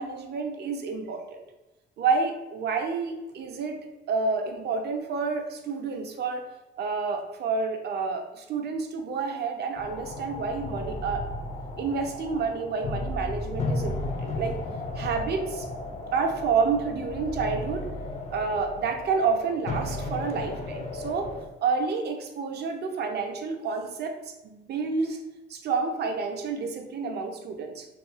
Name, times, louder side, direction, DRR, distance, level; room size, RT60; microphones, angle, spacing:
voice 1, 0.0-1.4 2.0-3.8 4.1-6.4 6.8-11.2 11.8-14.5 15.0-15.7 16.1-17.8 18.3-21.3 21.6-24.1 24.4-25.2 25.5-27.9, right 5 dB, 55° right, 5 dB, 0.5 m, -29 dB
sound 1, 9.8-21.5, left 2 dB, 35° left, 0.4 m, -34 dB
2.6 x 2.4 x 2.9 m, 1.0 s
cardioid pair, 90°, 20 cm